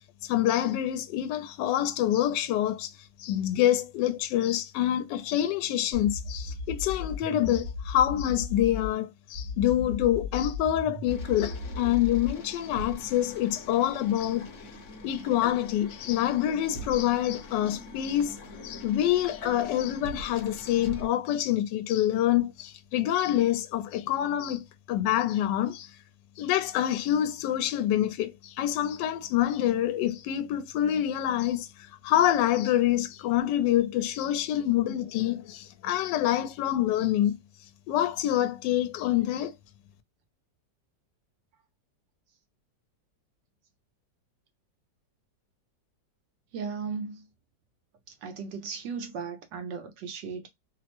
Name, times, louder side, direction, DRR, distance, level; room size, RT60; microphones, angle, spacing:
voice 1, 0.2-2.9 3.2-14.5 15.0-18.4 18.6-25.9 26.4-37.4 37.9-39.5, left 12 dB, 80° left, 1.2 m, -26 dB
sound 1, 5.9-8.9 9.3-12.4, left 4 dB, 40° right, 1.0 m, -36 dB
sound 2, 11.1-21.1, left 1 dB, 55° left, 1.0 m, -43 dB
voice 2, 46.5-47.2 48.2-50.5, right 5 dB, 75° right, 1.3 m, -36 dB
3.3 x 2.0 x 2.8 m
omnidirectional pair, 1.9 m